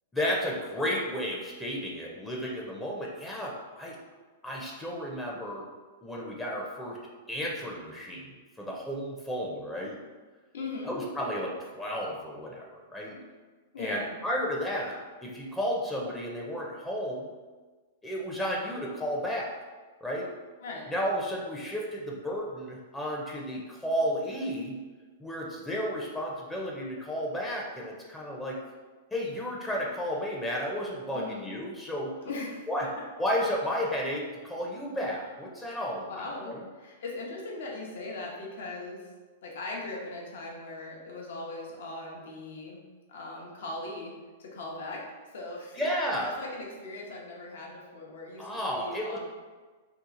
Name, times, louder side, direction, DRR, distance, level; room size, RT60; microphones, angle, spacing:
voice 1, 0.1-4.0 4.4-5.7 6.0-7.0 7.3-8.3 8.6-10.0 10.8-13.2 13.8-17.3 18.0-19.5 20.0-20.3 20.9-24.7 25.2-28.6 29.1-32.1 32.7-32.9 33.2-36.6 45.8-46.3 48.4-49.2, equal, 10° left, -3 dB, 0.5 m, -33 dB
voice 2, 10.5-10.9 13.7-14.1 20.6-20.9 31.1-31.4 32.2-32.9 35.7-39.0 39.4-42.8 43.1-44.1 44.4-45.0 45.3-45.8 46.2-49.2, left 2 dB, 70° left, -2 dB, 0.8 m, -39 dB
2.8 x 2.4 x 3.7 m, 1.3 s
hypercardioid pair, 125°, 0 cm